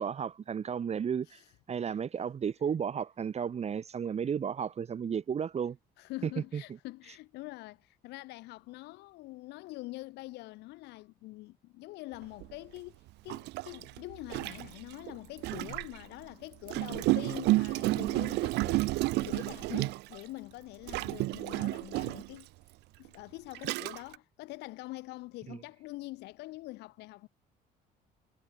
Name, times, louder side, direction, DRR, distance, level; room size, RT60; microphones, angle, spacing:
voice 1, 0.0-1.4 1.7-5.8 6.5-6.6 25.5-25.6, right 7 dB, 40° right, 2.2 m, -33 dB
voice 2, 6.0-18.8 19.2-22.5 23.0-27.3, left 20 dB, 90° left, 2.7 m, -45 dB
Gurgling, 12.4-12.5 13.3-16.0 16.7-20.3 20.9-22.4 23.0-23.1 23.5-24.2, right 20 dB, 90° right, 1.8 m, -31 dB
cardioid pair, 110°, 17 cm